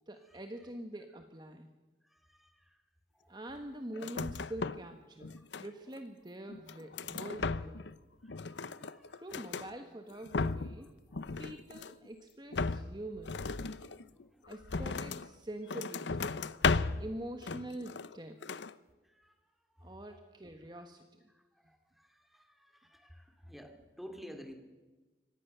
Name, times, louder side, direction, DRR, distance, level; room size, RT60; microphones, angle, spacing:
voice 1, 0.1-1.7 3.3-7.9 9.1-11.0 11.4-13.5 14.5-16.4 17.0-18.5 19.8-21.1, right 1 dB, 25° right, 6 dB, 1.2 m, -45 dB
sound 1, 4.0-4.9 5.2-6.0 6.5-7.9 8.2-9.7 10.1-10.8 11.1-12.1 12.5-15.3 15.7-17.1 17.4-18.2 18.4-18.7, left 4 dB, 80° left, 0.8 m, -36 dB
voice 2, 8.5-9.0 13.8-13.9 19.2-19.3 21.7-24.5, equal, ahead, 5 dB, 2.4 m, -51 dB
24.5 x 18.0 x 6.8 m, 1.2 s
head